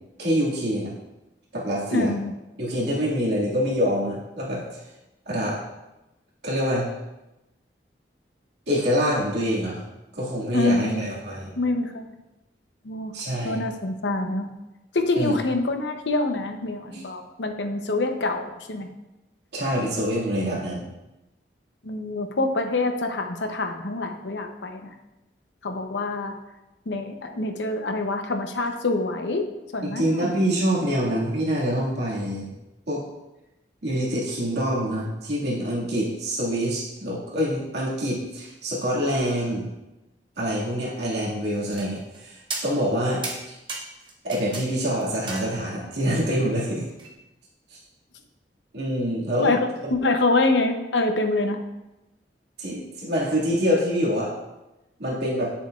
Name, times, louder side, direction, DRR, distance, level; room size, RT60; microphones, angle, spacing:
voice 1, 0.2-0.9 1.5-2.1 2.6-4.8 5.3-5.6 6.4-6.9 8.7-9.8 10.1-11.5 13.1-13.6 15.2-15.4 16.9-17.0 19.5-20.9 29.8-32.5 32.9-33.0 33.8-39.7 40.4-43.6 44.2-46.9 47.7-47.8 48.7-49.9 52.6-54.3 55.0-55.5, equal, 75° right, -5 dB, 2.1 m, -26 dB
voice 2, 1.9-2.3 10.5-11.1 11.6-12.1 12.8-13.2 13.4-14.5 14.9-18.9 21.8-24.9 25.6-26.3 26.9-29.4 29.7-30.3 49.4-51.6, left 2 dB, 90° left, 5 dB, 0.8 m, -25 dB
sound 1, 41.7-42.2 42.5-43.0 43.2-44.7 45.0-45.9 47.0-47.1, right 3 dB, 25° right, 1.0 m, -35 dB
8.7 x 6.9 x 2.5 m, 0.98 s
head